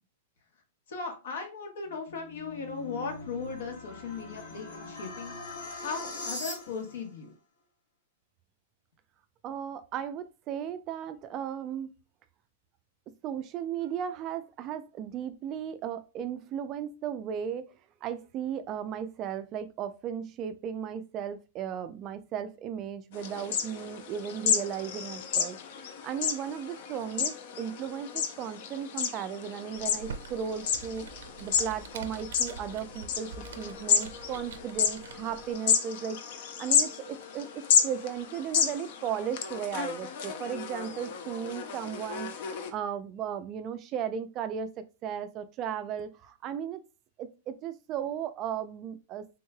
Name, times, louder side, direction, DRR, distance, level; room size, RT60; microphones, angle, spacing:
voice 1, 0.9-5.4 5.8-7.3, left 5 dB, 70° left, 1.1 m, -37 dB
sound 1, 1.9-7.0, left 2 dB, 90° left, 1.4 m, -41 dB
voice 2, 9.4-11.9 13.2-17.7 18.0-25.6 26.0-31.1 31.4-36.2 36.6-46.8 47.2-49.3, right 8 dB, 30° right, 0.3 m, -36 dB
sound 2, 23.1-42.7, left 7 dB, 55° left, 0.5 m, -31 dB
Computer keyboard, 29.7-35.5, right 5 dB, 80° right, 0.5 m, -45 dB
3.6 x 3.1 x 2.2 m
hypercardioid pair, 150°, 0 cm